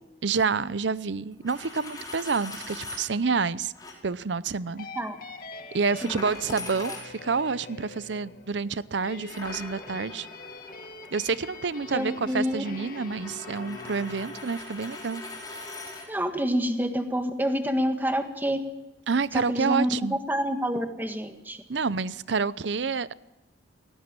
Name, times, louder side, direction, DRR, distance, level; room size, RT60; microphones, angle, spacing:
voice 1, 0.2-3.7 4.0-4.9 5.7-10.3 11.1-15.2 19.1-20.2 21.7-23.1, right 5 dB, 75° right, 18 dB, 0.7 m, -28 dB
Coin (dropping), 1.3-3.1 3.7-3.9 6.0-7.4 9.3-16.1, left 2 dB, 20° left, 5.3 m, -41 dB
sound 1, 4.7-14.4, left 3 dB, 50° left, 1.8 m, -44 dB
voice 2, 11.9-12.6 16.1-18.6 19.3-19.9 20.3-21.6, equal, 10° right, 6 dB, 1.6 m, -27 dB
17.5 x 17.5 x 9.0 m, 1.1 s
head